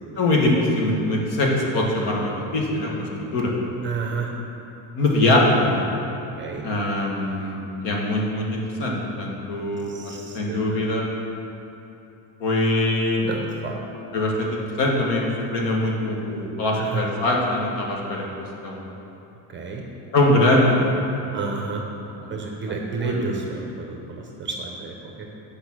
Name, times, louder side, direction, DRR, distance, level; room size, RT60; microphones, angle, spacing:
voice 1, 0.2-3.5 4.9-5.9 6.6-7.6 7.8-11.0 12.4-13.2 14.1-18.9 20.1-20.9 22.2-22.4 23.0-23.3, left 1 dB, 65° left, -2 dB, 1.7 m, -22 dB
voice 2, 3.8-4.3 6.4-6.6 9.9-10.8 13.2-13.7 16.8-17.0 19.5-19.8 21.3-21.8 22.3-25.4, right 4 dB, 25° right, 0 dB, 0.7 m, -31 dB
8.6 x 5.4 x 6.1 m, 2.9 s
cardioid pair, 160°, 46 cm